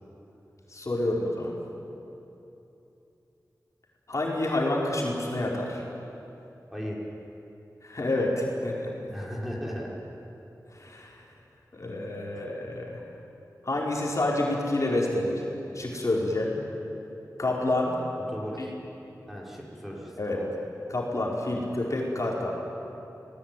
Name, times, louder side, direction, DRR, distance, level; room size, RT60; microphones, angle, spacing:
voice 1, 0.7-1.5 4.1-5.8 7.8-9.1 10.7-11.1 11.7-13.0 13.6-15.4 15.7-16.5 17.4-18.0 20.2-20.4 20.9-22.5, left 1 dB, 50° left, -2 dB, 4.6 m, -28 dB
voice 2, 9.1-10.0 18.3-18.7 19.3-20.5, equal, 5° right, -4 dB, 5.6 m, -36 dB
29.5 x 19.5 x 9.3 m, 3.0 s
wide cardioid pair, 85°, 7 cm